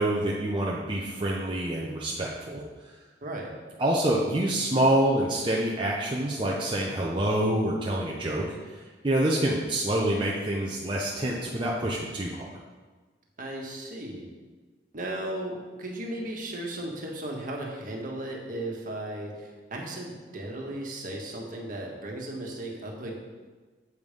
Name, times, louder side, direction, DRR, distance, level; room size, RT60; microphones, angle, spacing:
voice 1, 0.0-2.6 3.8-12.5, right 1 dB, 30° right, -4 dB, 0.8 m, -27 dB
voice 2, 3.2-3.5 13.4-14.2 14.9-23.1, right 1 dB, 50° right, -1 dB, 1.5 m, -36 dB
8.0 x 5.4 x 5.3 m, 1.3 s
head